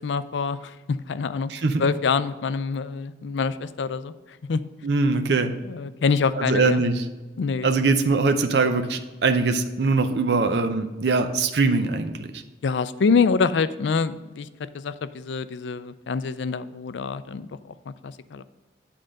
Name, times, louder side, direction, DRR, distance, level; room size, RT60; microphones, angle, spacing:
voice 1, 0.0-1.5 1.8-4.1 4.4-4.6 5.6-6.8 7.4-7.7 12.6-14.5 14.7-17.5 17.9-18.4, left 5 dB, 85° left, 14 dB, 0.4 m, -25 dB
voice 2, 1.5-1.8 4.8-5.5 6.4-7.0 7.6-12.4, right 3 dB, 65° right, 7 dB, 0.6 m, -22 dB
8.7 x 3.8 x 6.4 m, 1.2 s
head